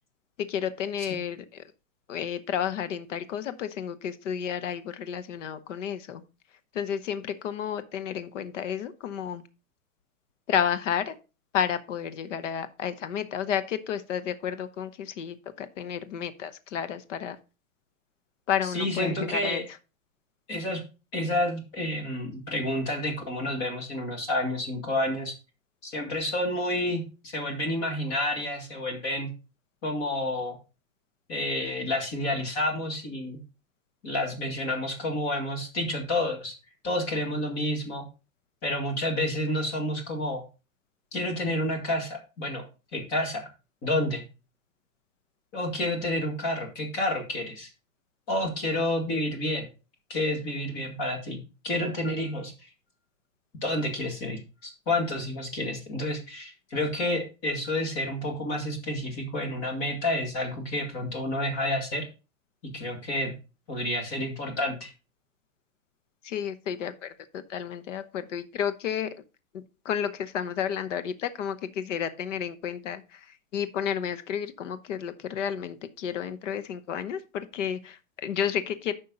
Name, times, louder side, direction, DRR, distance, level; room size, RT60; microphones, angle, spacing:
voice 1, 0.4-1.6 2.1-6.2 6.7-9.4 10.5-11.2 11.5-17.4 18.5-19.6 66.2-69.1 69.5-78.9, left 8 dB, 60° left, 12 dB, 1.0 m, -31 dB
voice 2, 18.7-19.6 20.5-20.8 21.1-25.3 25.8-29.3 29.8-30.6 31.3-33.4 34.0-36.5 36.8-38.0 38.6-40.4 41.1-42.7 42.9-43.5 43.8-44.2 45.5-47.7 48.3-49.7 50.1-52.7 53.6-62.0 62.6-63.3 63.7-64.9, left 1 dB, 25° left, 3 dB, 2.0 m, -29 dB
9.5 x 5.6 x 3.9 m, 0.31 s
supercardioid pair, 170°, 42 cm